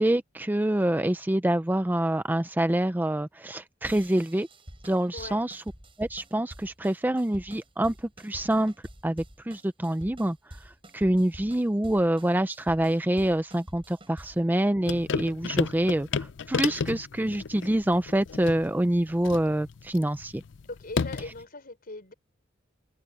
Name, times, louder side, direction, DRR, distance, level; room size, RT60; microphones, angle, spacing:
voice 1, 0.0-4.5 4.8-5.6 6.0-7.9 8.2-8.7 9.0-10.4 10.9-20.4, right 1 dB, 10° right, 0.5 m, -26 dB
sound 1, 3.8-14.5, right 1 dB, 30° right, 7.9 m, -48 dB
voice 2, 5.1-5.5 20.7-22.1, left 2 dB, 50° left, 4.6 m, -40 dB
sound 2, 14.8-21.4, left 5 dB, 65° left, 0.5 m, -33 dB
open air
head